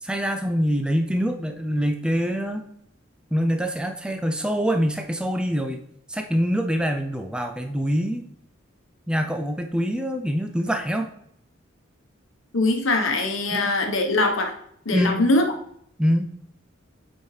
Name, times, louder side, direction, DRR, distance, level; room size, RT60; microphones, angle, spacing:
voice 1, 0.0-2.6 3.3-5.8 6.1-8.2 9.1-11.1 13.5-13.7 14.9-15.2 16.0-16.3, equal, 5° right, 5 dB, 0.4 m, -24 dB
voice 2, 12.5-14.5 14.8-15.4, left 2 dB, 75° left, 4 dB, 1.0 m, -22 dB
8.1 x 4.4 x 3.2 m, 0.69 s
head